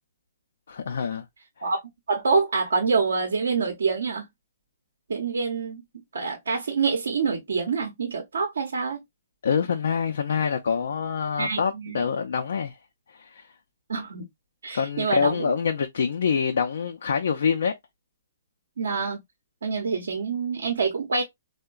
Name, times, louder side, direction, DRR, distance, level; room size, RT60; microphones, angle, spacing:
voice 1, 0.7-1.3 9.4-12.8 13.1-13.4 14.7-17.7, left 6 dB, 70° left, 0.4 m, -26 dB
voice 2, 2.1-4.3 5.1-9.0 11.4-12.0 13.9-14.3 14.6-15.5 18.8-19.2 19.6-21.2, right 4 dB, 75° right, 0.7 m, -26 dB
3.6 x 2.1 x 2.3 m
hypercardioid pair, 135°, 0 cm